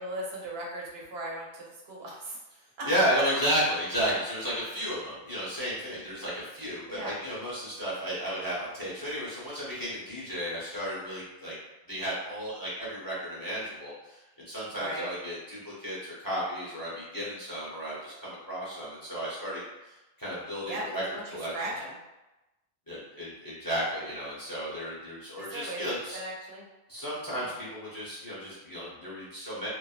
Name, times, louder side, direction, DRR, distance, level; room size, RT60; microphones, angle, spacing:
voice 1, 0.0-2.4 2.8-2.9 6.9-7.1 14.7-15.1 20.6-21.9 25.4-25.8 26.1-26.6 27.4-27.5, right 1 dB, 80° right, -3 dB, 0.9 m, -38 dB
voice 2, 2.8-11.6 11.9-21.0 21.3-21.5 22.9-26.2 26.9-29.7, equal, 25° left, -9 dB, 0.7 m, -33 dB
3.0 x 2.0 x 2.4 m, 1.0 s
omnidirectional pair, 1.1 m